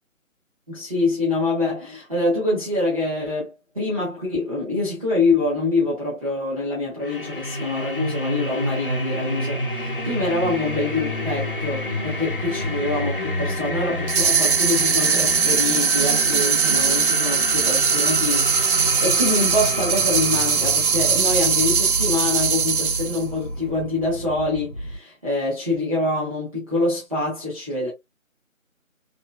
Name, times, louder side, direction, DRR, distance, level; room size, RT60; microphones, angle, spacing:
voice 1, 0.7-27.9, left 2 dB, 25° right, 1.1 m, -25 dB
sound 1, 7.0-25.0, left 1 dB, 40° left, 0.6 m, -29 dB
sound 2, 14.1-23.2, right 6 dB, 90° right, 0.6 m, -20 dB
3.1 x 3.0 x 2.3 m
figure-of-eight pair, 160°, 41 cm